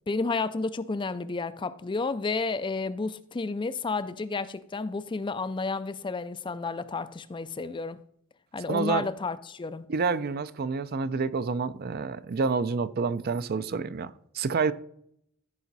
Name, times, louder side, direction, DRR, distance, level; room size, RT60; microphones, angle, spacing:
voice 1, 0.1-8.0 8.5-9.9, left 3 dB, 20° left, 0.4 m, -31 dB
voice 2, 8.7-9.1 9.9-14.7, right 4 dB, 45° right, 0.5 m, -28 dB
15.0 x 5.0 x 4.1 m
head